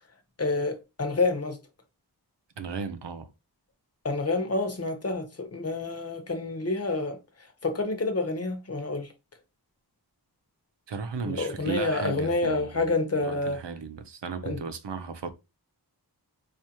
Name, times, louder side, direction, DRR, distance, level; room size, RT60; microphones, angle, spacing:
voice 1, 0.4-1.6 4.0-7.2 7.6-9.1 11.2-13.6 14.4-14.6, left 3 dB, 35° left, 0.8 m, -28 dB
voice 2, 2.6-3.3 10.9-15.3, right 5 dB, 85° right, 0.7 m, -35 dB
4.7 x 2.5 x 2.9 m
wide cardioid pair, 70°, 41 cm